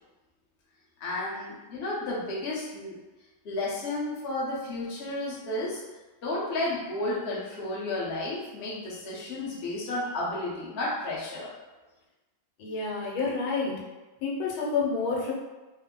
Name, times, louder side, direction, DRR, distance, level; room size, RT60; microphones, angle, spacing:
voice 1, 1.0-3.0 3.4-5.8 6.2-11.5, left 2 dB, 50° left, -6 dB, 0.7 m, -32 dB
voice 2, 12.6-13.8 14.2-15.3, left 4 dB, 85° left, -3 dB, 1.5 m, -29 dB
3.4 x 2.1 x 3.6 m, 1.1 s
omnidirectional pair, 2.3 m